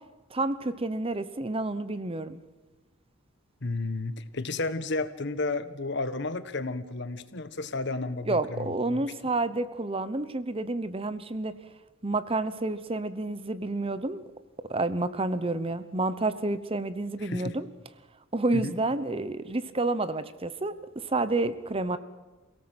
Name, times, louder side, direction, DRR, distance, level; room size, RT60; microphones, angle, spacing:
voice 1, 0.3-2.4 8.3-11.5 12.0-14.2 14.7-17.7 18.3-22.0, right 2 dB, 30° right, 14 dB, 1.0 m, -29 dB
voice 2, 3.6-9.1 17.2-17.6 18.5-18.8, left 3 dB, 60° left, 12 dB, 1.3 m, -32 dB
28.0 x 17.5 x 7.9 m, 1.2 s
head